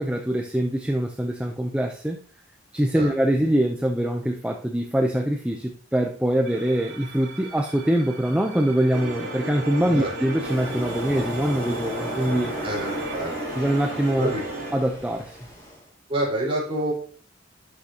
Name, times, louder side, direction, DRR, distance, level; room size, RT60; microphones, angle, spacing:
voice 1, 0.0-2.2 2.7-12.5 13.6-14.3 14.7-15.4, right 1 dB, 5° right, 3 dB, 0.6 m, -24 dB
sound 1, 6.4-13.2, right 5 dB, 60° right, 2.6 m, -42 dB
sound 2, 8.9-14.7, right 1 dB, 85° right, 2.7 m, -33 dB
Waves surf, 10.4-15.8, left 1 dB, 15° left, 3.4 m, -36 dB
voice 2, 12.6-13.3 14.2-14.4 16.1-16.9, right 1 dB, 30° right, -4 dB, 4.2 m, -27 dB
11.5 x 6.1 x 2.9 m, 0.44 s
head